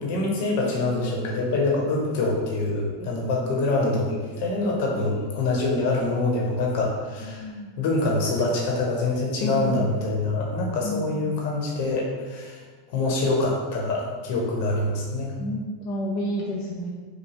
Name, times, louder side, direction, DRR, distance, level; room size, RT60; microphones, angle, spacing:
voice 1, 0.0-7.5 7.8-12.6 12.9-15.4, left 2 dB, 60° left, -1 dB, 1.0 m, -25 dB
voice 2, 7.3-7.7 9.4-9.9 10.8-11.2 15.4-16.9, left 1 dB, 40° left, -4 dB, 0.5 m, -30 dB
4.8 x 2.2 x 3.1 m, 1.4 s
hypercardioid pair, 95°, 0 cm